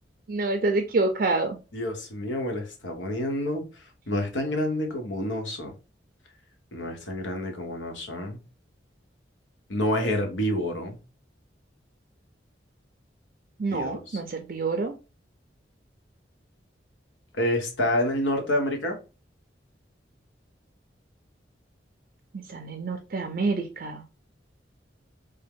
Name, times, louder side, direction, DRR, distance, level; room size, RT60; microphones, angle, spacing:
voice 1, 0.3-1.6 13.6-14.9 22.5-24.0, right 3 dB, 50° right, 0.4 m, -27 dB
voice 2, 1.7-3.6 4.1-5.7 6.7-8.4 9.7-11.0 13.7-14.2 17.3-19.0, left 1 dB, 85° left, 1.1 m, -28 dB
3.5 x 2.2 x 3.6 m
head